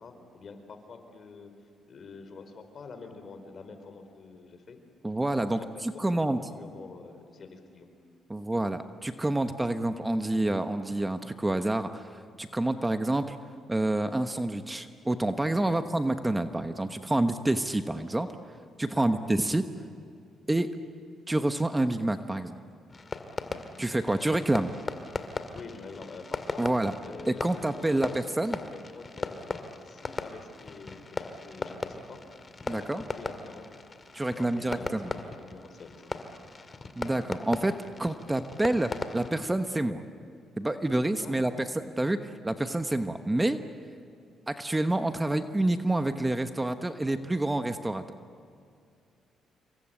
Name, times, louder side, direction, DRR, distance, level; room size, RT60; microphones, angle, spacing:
voice 1, 0.0-4.8 5.2-7.9 15.6-15.8 18.8-19.1 25.5-26.7 27.0-32.2 32.6-33.7 34.3-36.3 41.2-41.5, left 4 dB, 50° left, 7 dB, 4.5 m, -47 dB
voice 2, 5.0-6.4 8.3-12.1 12.4-13.4 13.7-18.3 18.8-19.6 20.5-20.7 21.3-22.5 23.8-24.7 26.6-26.9 27.3-28.6 32.7-33.0 34.1-35.1 37.0-40.0 40.6-43.6 44.5-48.0, right 1 dB, 15° right, 8 dB, 1.1 m, -28 dB
Fireworks, 22.9-39.4, left 3 dB, 30° left, 2.2 m, -38 dB
27.5 x 24.0 x 9.0 m, 2.4 s
cardioid pair, 90°, 0 cm